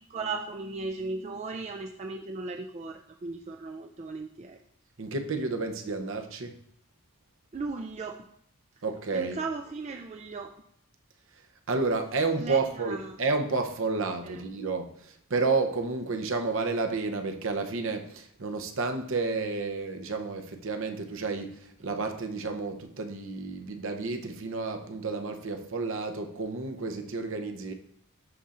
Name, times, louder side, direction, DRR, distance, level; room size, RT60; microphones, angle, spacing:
voice 1, 0.0-4.6 7.5-8.2 9.1-10.5 12.4-13.2 14.2-14.4, right 3 dB, 30° right, 0.3 m, -37 dB
voice 2, 5.0-6.5 8.8-9.4 11.7-27.7, right 3 dB, 60° right, 0.7 m, -31 dB
11.0 x 4.1 x 2.5 m
head